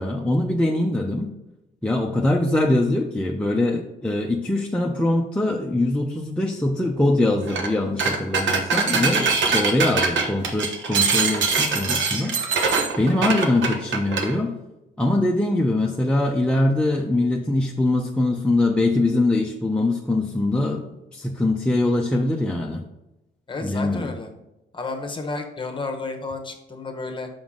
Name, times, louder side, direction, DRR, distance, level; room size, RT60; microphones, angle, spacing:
voice 1, 0.0-1.3 1.8-12.3 13.0-14.5 15.0-22.8 23.6-24.1, left 2 dB, 5° left, -1 dB, 0.6 m, -22 dB
sound 1, 7.5-7.7 8.0-14.3, right 4 dB, 70° right, 1.0 m, -23 dB
voice 2, 23.5-24.3 24.7-27.3, left 3 dB, 25° left, 4 dB, 1.1 m, -31 dB
5.7 x 5.2 x 3.7 m, 0.96 s
cardioid pair, 90°, 20 cm